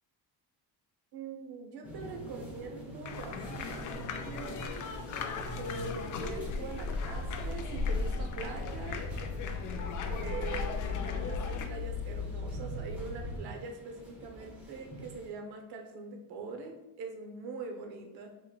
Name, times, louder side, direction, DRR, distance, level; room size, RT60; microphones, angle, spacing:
voice 1, 1.1-3.4 3.7-4.7 5.6-9.0 10.0-18.3, right 4 dB, 60° right, 3 dB, 0.8 m, -43 dB
sound 1, 1.8-15.3, right 1 dB, 5° right, 0.8 m, -47 dB
sound 2, 3.1-11.7, left 4 dB, 45° left, 0.5 m, -37 dB
sound 3, 6.8-13.4, left 4 dB, 65° left, 0.9 m, -39 dB
5.1 x 3.0 x 2.3 m, 0.95 s
cardioid pair, 140°, 43 cm